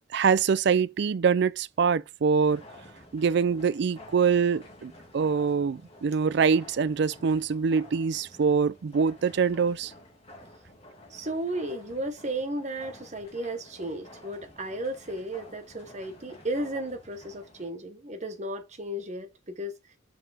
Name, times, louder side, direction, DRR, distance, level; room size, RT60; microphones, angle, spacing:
voice 1, 0.1-2.6 3.1-9.9, right 6 dB, 55° right, 0.4 m, -24 dB
sound 1, 2.4-17.7, left 1 dB, 30° left, 2.1 m, -51 dB
voice 2, 11.1-19.7, right 1 dB, 35° right, 1.0 m, -34 dB
5.5 x 4.8 x 4.8 m
head